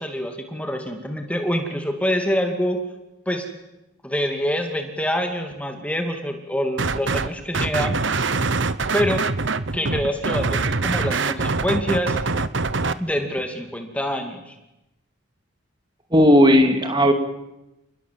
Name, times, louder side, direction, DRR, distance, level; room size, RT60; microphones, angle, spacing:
voice 1, 0.0-2.8 3.3-3.5 4.0-8.0 8.9-9.3 9.7-12.2 13.0-14.6, equal, 5° left, 4 dB, 2.4 m, -26 dB
sound 1, 6.8-7.3 7.5-12.9, right 3 dB, 60° right, 1.1 m, -23 dB
voice 2, 16.1-17.1, equal, 20° right, 6 dB, 2.7 m, -15 dB
29.5 x 20.5 x 7.7 m, 0.94 s
head